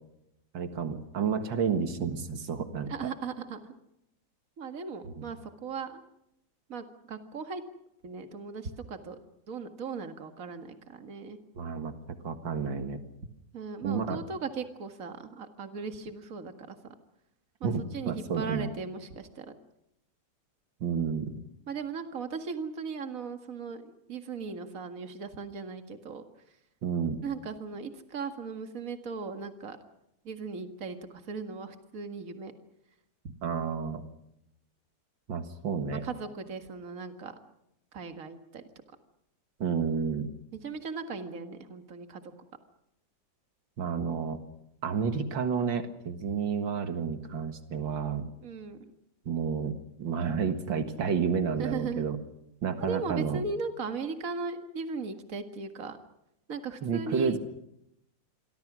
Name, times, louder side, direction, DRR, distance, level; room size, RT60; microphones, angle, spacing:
voice 1, 0.5-2.9 5.2-5.3 11.6-13.0 13.8-14.2 17.6-18.7 20.8-21.4 26.8-27.2 33.4-34.0 35.3-36.0 39.6-40.3 43.8-44.4 44.8-48.2 49.3-52.2 52.6-53.4 56.8-57.4, right 6 dB, 80° right, 8 dB, 2.4 m, -30 dB
voice 2, 2.9-3.7 4.6-6.0 6.7-7.6 8.0-9.2 9.5-11.4 13.5-16.9 17.6-19.6 21.7-26.2 27.2-29.8 30.2-32.5 36.0-37.3 37.9-38.6 40.6-42.2 48.4-48.9 51.6-52.1 52.8-56.0 56.5-57.4, right 4 dB, 45° right, 7 dB, 2.2 m, -38 dB
28.0 x 23.0 x 6.2 m, 0.82 s
omnidirectional pair, 2.0 m